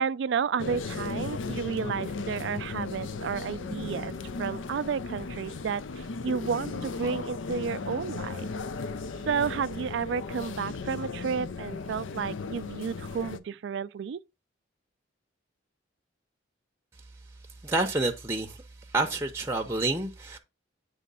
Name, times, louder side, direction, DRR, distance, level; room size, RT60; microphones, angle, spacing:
voice 1, 0.0-8.5 9.2-14.2, right 6 dB, 65° right, 0.3 m, -32 dB
sound 1, 0.6-13.4, left 4 dB, 75° left, 0.5 m, -36 dB
voice 2, 17.6-18.6 18.9-20.4, right 2 dB, 15° right, 0.7 m, -28 dB
8.4 x 3.2 x 5.4 m
head